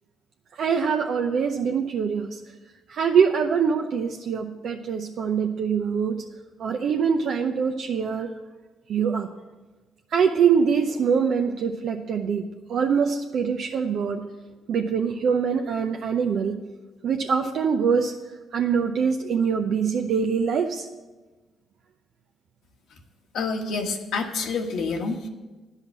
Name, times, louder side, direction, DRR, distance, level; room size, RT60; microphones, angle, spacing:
voice 1, 0.6-2.4 2.9-6.2 6.6-8.3 8.9-9.3 10.1-14.2 14.7-16.6 17.0-18.1 18.5-20.9, right 6 dB, 65° right, 3 dB, 0.6 m, -24 dB
voice 2, 23.3-25.3, left 4 dB, 75° left, 2 dB, 1.3 m, -28 dB
10.0 x 5.7 x 8.0 m, 1.2 s
cardioid pair, 90°, 0 cm